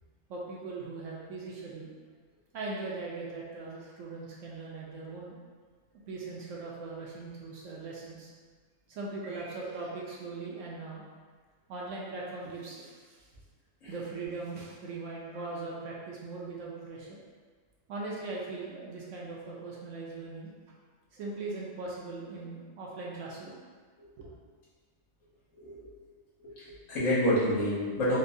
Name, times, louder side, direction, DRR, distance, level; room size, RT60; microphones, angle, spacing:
voice 1, 0.3-1.9 2.5-5.3 6.1-8.3 8.9-11.0 11.7-13.3 13.9-17.2 17.9-20.5 21.1-23.6 24.2-24.3, right 3 dB, 70° right, -4 dB, 0.9 m, -40 dB
voice 2, 25.5-25.9 26.4-28.2, equal, 70° left, -10 dB, 1.5 m, -28 dB
4.2 x 2.2 x 2.6 m, 1.5 s
omnidirectional pair, 1.5 m